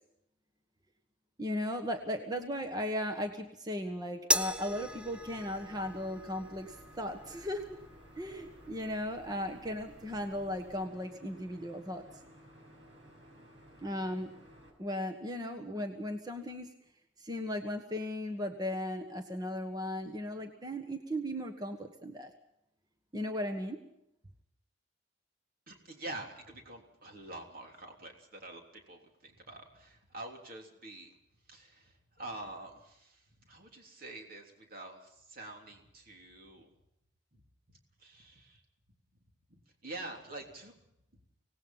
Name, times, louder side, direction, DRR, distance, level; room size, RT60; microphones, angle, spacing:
voice 1, 1.4-7.7 8.2-12.0 13.8-14.3 14.8-16.7 17.2-22.3 23.1-23.8, left 1 dB, 20° right, 5 dB, 1.4 m, -36 dB
sound 1, 4.3-10.9, equal, 5° right, 0.7 m, -39 dB
sound 2, 4.7-14.7, equal, 90° right, 6.6 m, -56 dB
voice 2, 25.7-31.1 31.5-36.7 37.3-37.4 37.7-38.6 39.5-40.7, right 2 dB, 50° right, 2 dB, 3.4 m, -47 dB
25.0 x 19.0 x 5.7 m, 0.79 s
head